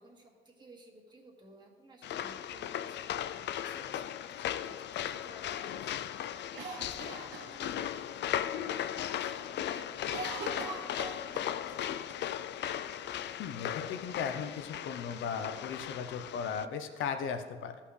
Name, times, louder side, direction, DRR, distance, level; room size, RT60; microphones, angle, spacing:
voice 1, 0.0-12.4, right 2 dB, 20° right, 0 dB, 2.0 m, -56 dB
sound 1, 2.0-16.6, left 10 dB, 60° left, 0.4 m, -37 dB
Cough, 6.6-8.1 8.4-8.5 8.8-9.3 9.5-11.8 12.1-12.2 12.9-13.7, right 4 dB, 70° right, 1.4 m, -43 dB
voice 2, 13.4-17.7, left 6 dB, 80° left, 8 dB, 0.8 m, -37 dB
13.5 x 5.6 x 3.3 m, 1.4 s
cardioid pair, 90°, 20 cm